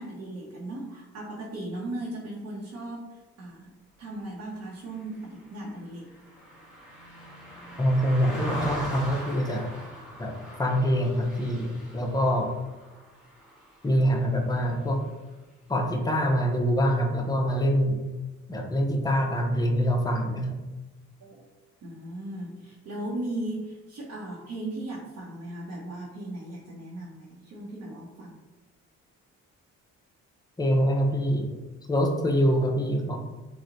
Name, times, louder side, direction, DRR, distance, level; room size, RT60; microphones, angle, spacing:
voice 1, 0.0-3.7 4.0-6.1 21.2-21.5 21.8-28.4, right 1 dB, 60° right, -5 dB, 0.8 m, -37 dB
Car passing by, 4.9-14.5 14.9-15.1, equal, 5° right, 1.1 m, -40 dB
voice 2, 7.8-9.7 10.2-10.3 10.6-12.5 13.8-15.0 15.7-18.0 18.5-20.6 30.6-31.5 31.9-33.2, equal, 15° left, 1 dB, 0.6 m, -25 dB
2.9 x 2.1 x 3.8 m, 1.1 s
cardioid pair, 90°, 30 cm